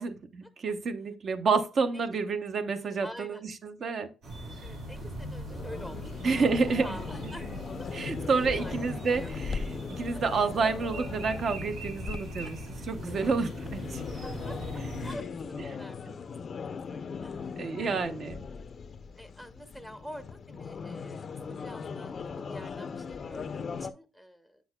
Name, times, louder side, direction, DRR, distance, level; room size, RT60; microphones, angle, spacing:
voice 1, 0.0-4.1 6.2-6.9 7.9-9.6 9.9-14.0 17.6-18.5, right 4 dB, 50° right, 0.7 m, -29 dB
voice 2, 3.0-3.4 4.6-6.5 6.8-7.4 7.8-8.1 8.6-9.3 10.1-10.2 13.1-13.2 14.5-18.4 19.2-24.6, equal, 10° right, 0.7 m, -47 dB
sound 1, 4.2-15.1, equal, 80° right, 4.0 m, -40 dB
sound 2, 5.5-23.9, left 5 dB, 45° left, 0.4 m, -39 dB
7.9 x 6.2 x 2.2 m
cardioid pair, 90°, 0 cm